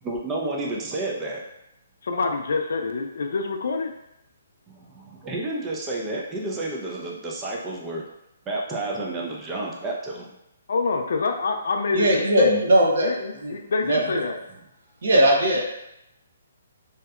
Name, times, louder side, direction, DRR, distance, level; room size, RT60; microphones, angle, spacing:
voice 1, 0.0-1.4 4.7-8.0 8.5-10.3, right 2 dB, 15° right, -3 dB, 0.4 m, -30 dB
voice 2, 2.0-3.9 10.7-12.5 13.0-14.4, left 4 dB, 70° left, 5 dB, 0.3 m, -26 dB
voice 3, 11.9-13.1 13.4-13.6 13.9-14.2 15.0-15.6, right 1 dB, 65° right, -1 dB, 0.6 m, -19 dB
2.7 x 2.1 x 2.3 m, 0.84 s
hypercardioid pair, 165°, 0 cm